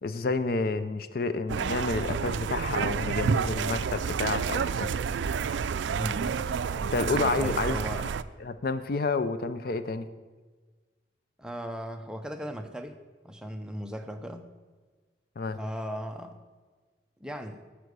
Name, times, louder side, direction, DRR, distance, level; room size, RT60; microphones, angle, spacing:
voice 1, 0.0-4.9 6.8-8.1 8.4-10.1 15.4-15.6, left 3 dB, 55° left, 12 dB, 0.5 m, -30 dB
sound 1, 1.5-8.2, right 6 dB, 80° right, 0.3 m, -29 dB
voice 2, 5.9-6.4 7.4-8.1 11.4-13.0 13.2-14.4 15.5-16.4 17.2-17.7, equal, 5° right, 5 dB, 0.6 m, -37 dB
9.9 x 5.0 x 8.0 m, 1.4 s
head